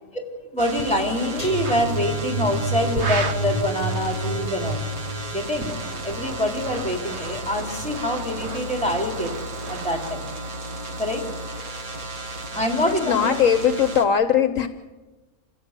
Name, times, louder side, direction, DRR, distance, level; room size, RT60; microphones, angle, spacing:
voice 1, 0.5-4.9 5.3-5.7 6.0-9.3 9.7-10.4 11.0-12.0 12.4-13.4, equal, 5° left, 2 dB, 4.0 m, -26 dB
sound 1, 0.6-14.0, right 2 dB, 70° right, 2.3 m, -34 dB
sound 2, 1.4-8.5 8.8-9.1 9.4-9.6, right 1 dB, 25° right, 4.6 m, -30 dB
sound 3, 1.6-1.9 2.9-3.6 5.4-10.1, right 3 dB, 50° right, 1.6 m, -35 dB
voice 2, 12.8-14.7, left 8 dB, 65° left, 10 dB, 1.2 m, -20 dB
28.0 x 16.0 x 8.3 m, 1.2 s
omnidirectional pair, 1.5 m